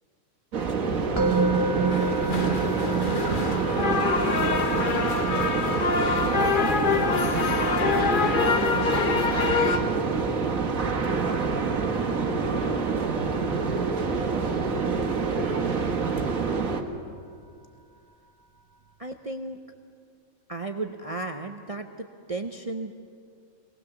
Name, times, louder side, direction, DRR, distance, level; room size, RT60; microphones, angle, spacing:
sound 1, 0.5-16.8, right 4 dB, 85° right, 1.8 m, -27 dB
Musical instrument, 1.2-12.3, right 4 dB, 15° right, 1.0 m, -32 dB
sound 2, 1.9-9.8, left 5 dB, 45° left, 1.0 m, -26 dB
voice 1, 11.1-11.9, equal, 70° left, -5 dB, 7.4 m, -48 dB
voice 2, 19.0-19.6 20.5-22.9, right 2 dB, 35° right, 5 dB, 0.7 m, -34 dB
22.5 x 19.0 x 7.2 m, 2.3 s
omnidirectional pair, 1.4 m